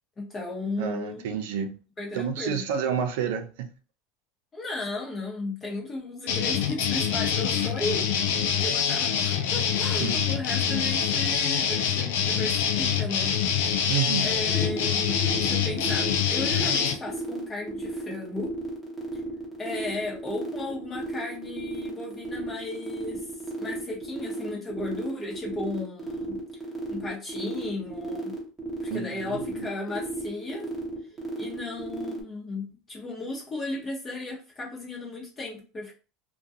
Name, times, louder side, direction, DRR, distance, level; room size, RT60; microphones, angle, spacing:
voice 1, 0.2-1.3 2.0-2.6 4.5-8.0 8.4-13.4 13.6-13.9 14.2-18.5 19.6-23.2 23.6-26.4 26.9-28.3 28.8-30.7 31.3-35.9, left 2 dB, 25° left, 0.9 m, -35 dB
voice 2, 0.8-1.8 2.1-3.7 10.0-10.2 13.9-14.3 28.9-29.7, right 7 dB, 80° right, 0.5 m, -30 dB
sound 1, 6.3-16.9, left 7 dB, 80° left, 0.5 m, -25 dB
sound 2, 14.5-32.2, right 3 dB, 15° right, 0.9 m, -34 dB
2.4 x 2.2 x 2.7 m
supercardioid pair, 120°, 0 cm